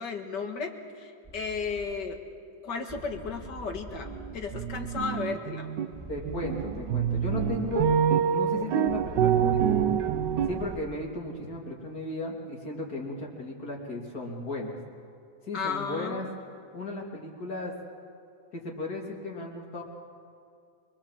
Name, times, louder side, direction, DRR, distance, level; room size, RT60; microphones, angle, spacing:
voice 1, 0.0-2.2 2.6-5.7 15.5-16.3, left 5 dB, 80° left, 4 dB, 2.4 m, -34 dB
sound 1, 1.2-1.9 2.9-5.0 5.9-8.0 8.9-10.8, right 2 dB, 10° right, 1.2 m, -42 dB
sound 2, 4.1-4.3 4.5-5.9 6.3-10.8, right 8 dB, 90° right, 1.5 m, -26 dB
voice 2, 6.1-7.9 8.3-9.9 10.5-14.8 15.4-16.3 16.7-17.7 18.5-19.8, left 2 dB, 60° left, -1 dB, 3.5 m, -35 dB
24.0 x 22.5 x 7.5 m, 2.4 s
omnidirectional pair, 1.8 m